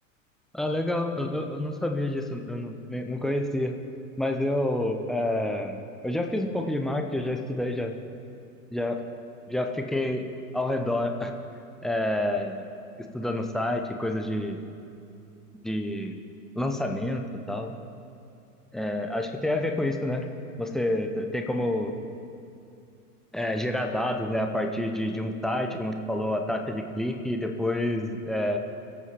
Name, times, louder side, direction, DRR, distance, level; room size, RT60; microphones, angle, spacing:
voice 1, 0.5-3.8 4.2-7.9 8.7-9.0 9.5-10.3 10.5-11.3 11.8-12.7 13.0-14.6 15.6-16.2 16.5-17.7 18.7-20.3 20.6-22.0 23.3-28.6, left 1 dB, ahead, 4 dB, 0.7 m, -28 dB
24.0 x 8.4 x 4.5 m, 2.6 s
figure-of-eight pair, 95°, 47 cm